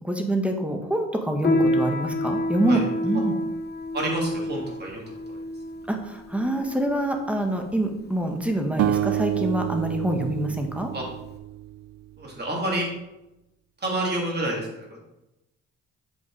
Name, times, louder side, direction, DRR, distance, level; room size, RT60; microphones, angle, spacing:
voice 1, 0.0-3.3 5.9-10.9, right 1 dB, 5° right, 4 dB, 1.4 m, -26 dB
Piano, 1.4-11.4, left 1 dB, 35° left, 1.2 m, -29 dB
voice 2, 3.9-5.4 10.9-11.0 12.2-12.9 13.8-15.1, right 1 dB, 35° right, -2 dB, 3.1 m, -29 dB
sound 1, 8.8-12.0, right 13 dB, 65° right, 0.4 m, -28 dB
7.9 x 5.3 x 4.9 m, 0.94 s
cardioid pair, 90°, 30 cm